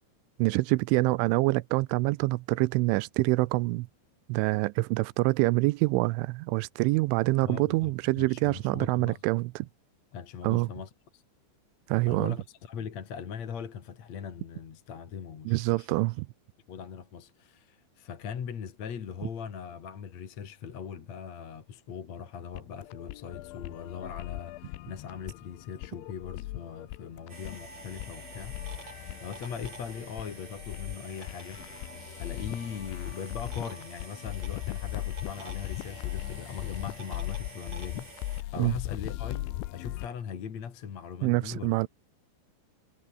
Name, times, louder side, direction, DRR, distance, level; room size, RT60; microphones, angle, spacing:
voice 1, 0.4-3.9 4.3-9.7 10.4-10.7 11.9-12.4 15.5-16.3 38.6-38.7 41.2-41.9, right 22 dB, 90° right, 3.1 m, -26 dB
voice 2, 7.4-9.2 10.1-11.2 12.1-15.9 16.7-31.6 32.2-41.7, left 7 dB, 45° left, 2.9 m, -40 dB
sound 1, 22.5-40.1, left 16 dB, 80° left, 3.4 m, -39 dB
sound 2, 27.3-38.4, right 3 dB, 35° right, 9.2 m, -47 dB
omnidirectional pair, 5.5 m